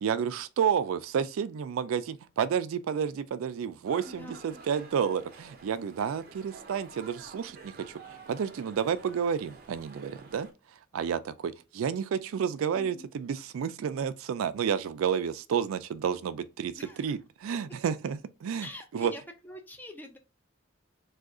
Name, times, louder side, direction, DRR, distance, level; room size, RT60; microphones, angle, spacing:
voice 1, 0.0-10.5 10.9-16.7 17.0-18.7 18.9-19.1, right 7 dB, 85° right, 0.3 m, -30 dB
sound 1, 3.9-10.5, right 3 dB, 45° right, 0.6 m, -50 dB
voice 2, 4.0-4.6 12.7-13.1 16.8-17.2 18.6-20.2, left 1 dB, 10° left, 0.5 m, -45 dB
2.7 x 2.4 x 3.6 m
head